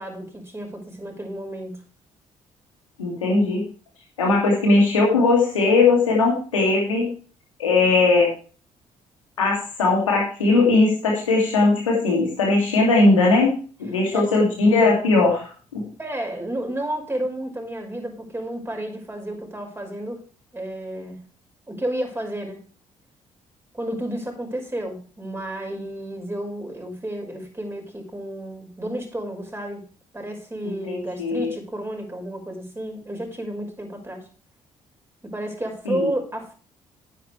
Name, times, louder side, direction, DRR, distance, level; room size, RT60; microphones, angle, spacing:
voice 1, 0.0-1.8 14.1-14.3 16.0-20.2 20.5-21.3 21.7-22.6 23.7-29.8 30.1-34.3 35.2-36.5, right 1 dB, 15° right, 2 dB, 5.9 m, -31 dB
voice 2, 3.0-3.6 4.2-7.1 7.6-8.3 9.4-13.5 13.8-15.8 30.6-31.5 35.9-36.1, left 3 dB, 90° left, -2 dB, 2.6 m, -19 dB
10.5 x 10.5 x 3.3 m, 0.38 s
hypercardioid pair, 45°, 16 cm